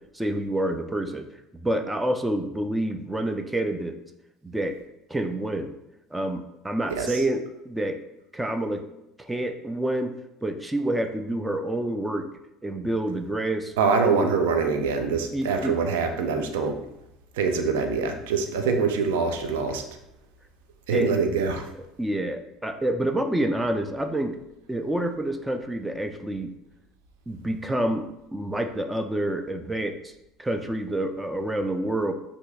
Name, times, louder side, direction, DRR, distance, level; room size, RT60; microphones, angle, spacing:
voice 1, 0.1-1.3 1.5-3.9 4.4-4.8 5.1-5.7 6.1-8.0 8.3-8.8 9.2-10.1 10.4-12.3 12.6-13.7 14.1-14.3 15.3-15.7 16.4-16.5 20.9-21.1 22.0-24.4 24.7-26.5 27.3-28.1 28.3-30.1 30.4-32.1, right 1 dB, 10° right, 7 dB, 0.4 m, -28 dB
voice 2, 13.8-16.8 17.4-19.8 20.9-21.7, right 5 dB, 65° right, 5 dB, 0.5 m, -24 dB
5.6 x 2.7 x 2.3 m, 0.88 s
figure-of-eight pair, 65°, 0 cm